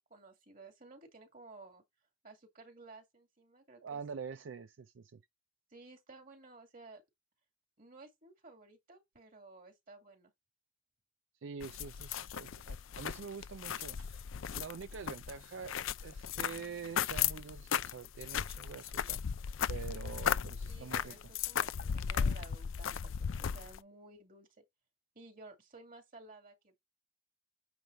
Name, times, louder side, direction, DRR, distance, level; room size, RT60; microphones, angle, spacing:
voice 1, 0.0-1.8 2.2-4.0 5.7-7.0 7.8-10.3 20.7-21.2 21.5-24.5 25.1-26.8, right 3 dB, 45° right, 2.4 m, -55 dB
voice 2, 3.8-5.2 11.4-14.2 14.5-19.2 19.7-21.1, right 6 dB, 75° right, 0.4 m, -46 dB
sound 1, 11.6-23.8, left 8 dB, 85° left, 0.5 m, -36 dB
9.2 x 3.3 x 5.5 m
head